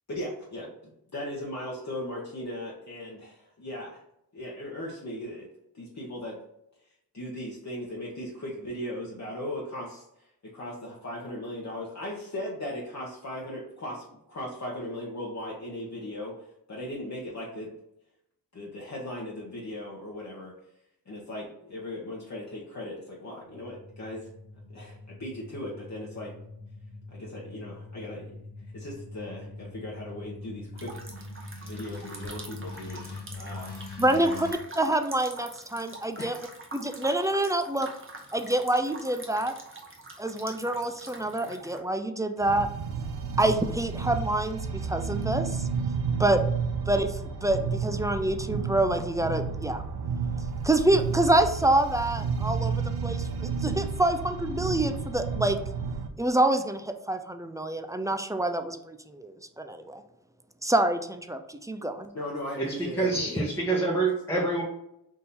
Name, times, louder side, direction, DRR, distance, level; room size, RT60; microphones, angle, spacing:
voice 1, 0.1-4.0 4.3-5.5 5.7-6.4 6.8-17.7 18.5-20.5 21.0-24.3 24.7-26.3 27.1-28.4 28.7-31.4 31.6-33.8 34.3-34.4 36.2-36.5 62.1-63.5, left 1 dB, 45° left, -4 dB, 1.0 m, -38 dB
sound 1, 23.4-34.5, left 3 dB, 80° left, 1.0 m, -43 dB
sound 2, 30.8-41.8, right 2 dB, 30° right, 1.0 m, -45 dB
voice 2, 34.0-34.5 34.8-36.4 36.7-37.9 38.3-39.6 40.2-42.7 43.4-45.7 46.2-46.4 46.9-49.8 50.6-55.6 56.2-60.0 60.6-62.1, right 1 dB, 10° right, 7 dB, 0.4 m, -27 dB
sound 3, 42.4-56.1, right 5 dB, 80° right, 0.5 m, -31 dB
voice 3, 62.9-64.6, right 3 dB, 5° left, -4 dB, 0.9 m, -26 dB
3.7 x 2.7 x 4.1 m, 0.80 s
cardioid pair, 40°, 39 cm